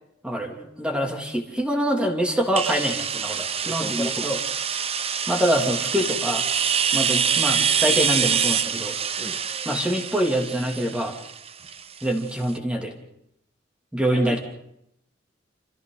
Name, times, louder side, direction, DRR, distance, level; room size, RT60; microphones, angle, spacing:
voice 1, 0.2-4.4 5.3-6.4 6.9-9.0 9.6-11.2 12.0-13.0 13.9-14.4, equal, 5° right, 1 dB, 2.7 m, -25 dB
sound 1, 2.6-12.2, right 7 dB, 30° right, 0.8 m, -25 dB
voice 2, 3.6-4.4 9.2-9.4 14.1-14.4, equal, 15° left, 1 dB, 1.4 m, -33 dB
27.0 x 26.5 x 3.9 m, 0.79 s
head